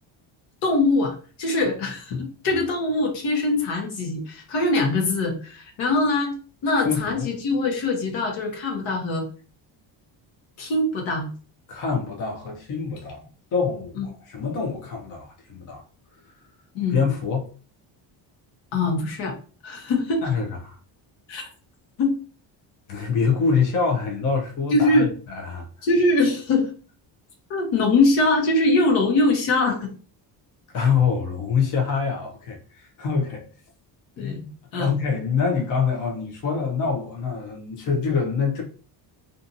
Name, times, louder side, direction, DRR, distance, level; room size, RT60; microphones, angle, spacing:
voice 1, 0.6-6.4 6.6-9.2 10.6-11.3 14.0-14.1 16.7-17.0 18.7-19.3 19.6-20.2 21.3-21.5 22.0-22.1 24.7-25.1 25.8-26.7 27.5-29.9 34.2-34.4 34.7-34.9, left 2 dB, 75° left, 1.0 m, -22 dB
voice 2, 6.8-7.3 11.7-15.8 16.9-17.5 20.2-20.8 22.9-25.7 30.7-33.5 34.2-38.6, left 5 dB, 45° left, 0.6 m, -25 dB
2.7 x 2.5 x 2.6 m
cardioid pair, 155°, 46 cm